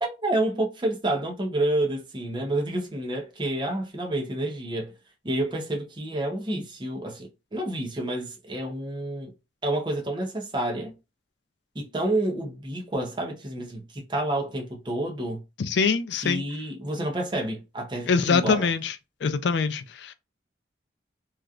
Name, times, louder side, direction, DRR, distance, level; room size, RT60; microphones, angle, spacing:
voice 1, 0.0-4.9 5.2-9.3 9.6-10.9 11.7-15.4 16.2-18.7, right 1 dB, 25° right, 0.7 m, -29 dB
voice 2, 15.6-16.4 18.1-19.0 19.2-20.1, left 5 dB, 70° left, 0.4 m, -24 dB
3.0 x 2.4 x 2.4 m
head